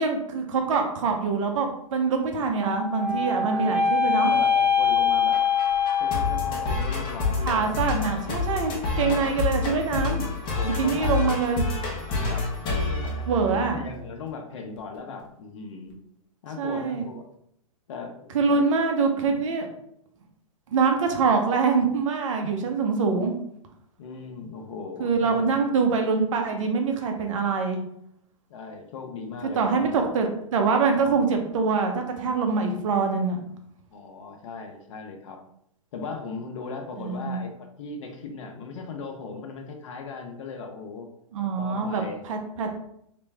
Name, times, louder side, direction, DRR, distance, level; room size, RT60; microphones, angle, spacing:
voice 1, 0.0-4.3 7.4-10.2 10.6-11.6 13.3-13.8 16.6-17.0 18.3-19.7 20.7-23.3 25.0-27.8 29.6-33.4 37.0-37.4 41.3-42.7, right 4 dB, 60° right, 4 dB, 0.9 m, -24 dB
sound 1, 2.6-6.9, left 6 dB, 10° right, 1.0 m, -23 dB
voice 2, 3.2-5.4 6.0-7.8 8.9-9.3 10.4-11.1 12.1-12.5 12.8-16.0 16.4-17.3 17.9-18.6 24.0-25.5 28.5-29.9 33.9-35.4 35.9-41.1 41.6-42.2, left 4 dB, 60° left, 3 dB, 0.9 m, -38 dB
sound 2, 5.3-13.9, left 3 dB, 25° left, 0.9 m, -28 dB
3.3 x 3.0 x 3.4 m, 0.72 s
hypercardioid pair, 135°, 18 cm